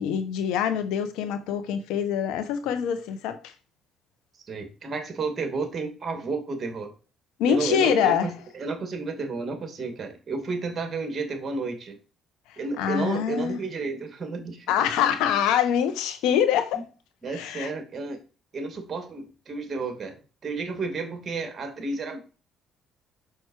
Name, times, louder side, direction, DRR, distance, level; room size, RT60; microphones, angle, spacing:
voice 1, 0.0-3.5 7.4-8.3 12.5-13.6 14.7-16.8 17.3-17.7, left 9 dB, 85° left, 1.2 m, -25 dB
voice 2, 4.5-7.0 7.5-12.0 12.6-14.7 16.7-16.8 17.2-18.2 18.5-22.2, right 4 dB, 40° right, 2.5 m, -32 dB
6.4 x 6.2 x 4.8 m
cardioid pair, 85°, 0 cm